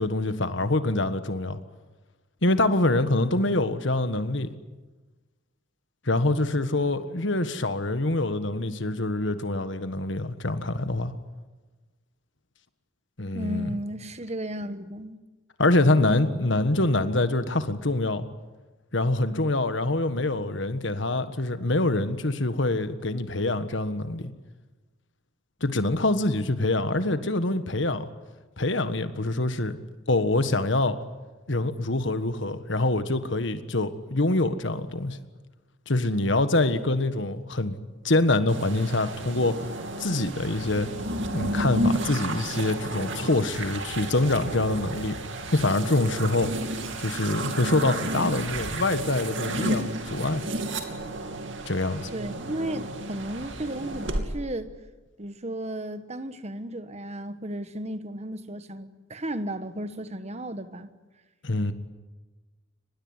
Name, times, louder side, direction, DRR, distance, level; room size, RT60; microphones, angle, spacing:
voice 1, 0.0-1.6 2.4-4.5 6.0-11.1 13.2-13.8 15.6-18.2 18.9-24.3 25.6-28.1 28.6-29.8 30.1-31.0 31.5-35.2 35.9-37.7 38.0-39.6 40.0-40.9 41.3-45.2 45.5-46.5 47.0-50.4 51.7-52.1 61.4-61.7, left 2 dB, 65° left, 1.6 m, -25 dB
voice 2, 13.3-15.2 52.1-54.7 55.2-60.9, right 1 dB, 35° right, 1.3 m, -34 dB
sound 1, 38.5-54.2, right 1 dB, 65° right, 2.7 m, -32 dB
24.5 x 20.5 x 9.7 m
head